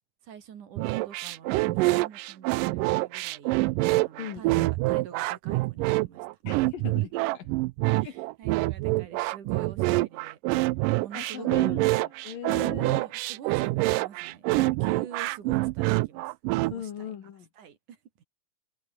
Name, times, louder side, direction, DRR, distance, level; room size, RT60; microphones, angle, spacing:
voice 1, 0.2-3.6 4.0-6.3 6.6-7.3 8.0-10.4 11.0-11.8 12.7-16.3 16.6-17.1 17.6-18.2, right 8 dB, 65° right, 3.6 m, -46 dB
sound 1, 0.8-16.7, right 21 dB, 85° right, 2.2 m, -26 dB
voice 2, 4.2-4.7 6.5-7.5 8.0-8.2 11.1-13.0 16.7-17.5, left 9 dB, 85° left, 3.9 m, -39 dB
omnidirectional pair, 3.8 m